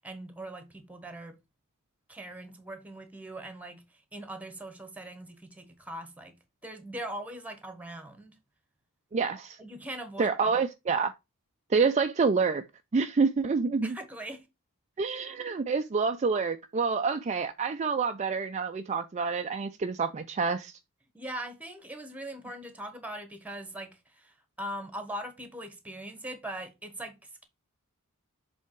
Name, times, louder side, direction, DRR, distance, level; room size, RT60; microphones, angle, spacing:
voice 1, 0.0-1.4 2.1-3.8 4.1-6.3 6.6-8.4 9.6-10.6 13.8-14.4 21.1-27.1, right 1 dB, 5° right, 1.2 m, -41 dB
voice 2, 9.1-9.6 10.2-11.1 11.7-12.6 12.9-14.0 15.0-20.8, right 5 dB, 30° right, 0.4 m, -27 dB
7.3 x 3.5 x 4.5 m
head